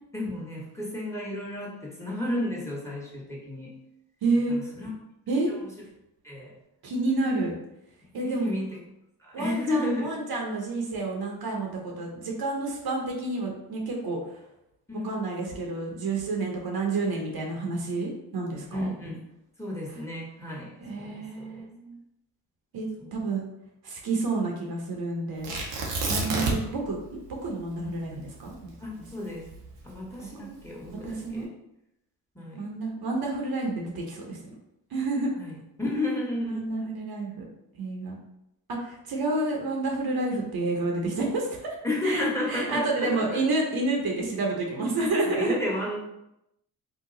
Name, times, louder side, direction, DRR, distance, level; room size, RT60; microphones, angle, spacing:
voice 1, 0.1-3.7 4.5-4.9 6.2-6.5 8.2-8.7 9.2-10.1 14.9-15.1 15.4-15.6 16.4-16.6 18.7-19.2 19.6-21.6 23.0-23.1 28.8-29.5 29.8-31.5 32.3-32.7 35.3-36.6 41.8-43.4 45.0-46.0, left 1 dB, 5° left, -3 dB, 1.3 m, -32 dB
voice 2, 4.2-4.6 5.3-5.5 6.8-7.5 8.1-8.5 9.3-14.4 15.0-18.9 20.8-22.0 22.7-23.4 23.8-25.5 26.1-28.5 30.4-30.5 31.0-31.5 32.6-34.4 34.9-35.3 36.4-37.4 37.8-38.2 38.7-41.8 42.0-45.6, right 2 dB, 60° right, 0 dB, 0.9 m, -29 dB
Tearing, 25.4-26.8 27.1-27.2 27.8-30.1 30.8-31.3, right 3 dB, 90° right, 0.8 m, -29 dB
2.8 x 2.3 x 3.8 m, 0.85 s
supercardioid pair, 45°, 41 cm